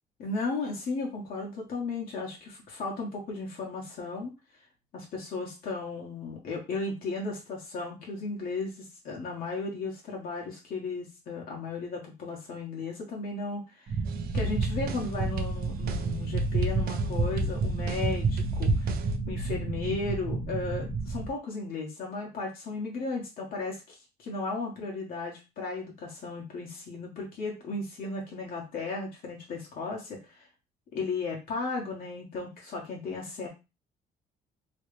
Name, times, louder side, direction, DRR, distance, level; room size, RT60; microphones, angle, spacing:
voice 1, 0.2-4.3 4.9-14.0 14.3-18.9 19.3-30.5 30.9-33.5, left 3 dB, 60° left, -1 dB, 1.3 m, -35 dB
sound 1, 13.9-21.3, right 3 dB, 40° right, 0.9 m, -30 dB
sound 2, 14.1-19.2, right 2 dB, 65° right, 0.6 m, -37 dB
3.1 x 2.9 x 3.2 m, 0.27 s
cardioid pair, 110°, 17 cm